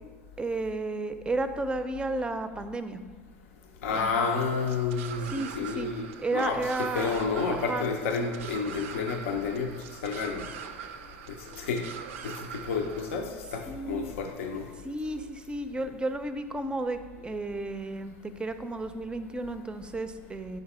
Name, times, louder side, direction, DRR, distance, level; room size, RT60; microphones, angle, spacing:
voice 1, 0.4-3.0 3.9-4.1 5.3-5.9 6.2-7.1 7.5-7.9 13.7-14.1 14.8-20.6, right 2 dB, 15° right, 10 dB, 0.4 m, -32 dB
voice 2, 3.8-10.4 11.4-11.9 12.2-14.7, left 5 dB, 80° left, 3 dB, 0.5 m, -30 dB
sound 1, 3.9-13.1, right 7 dB, 80° right, 0.4 m, -43 dB
4.9 x 3.9 x 5.4 m, 1.5 s
hypercardioid pair, 90°, 7 cm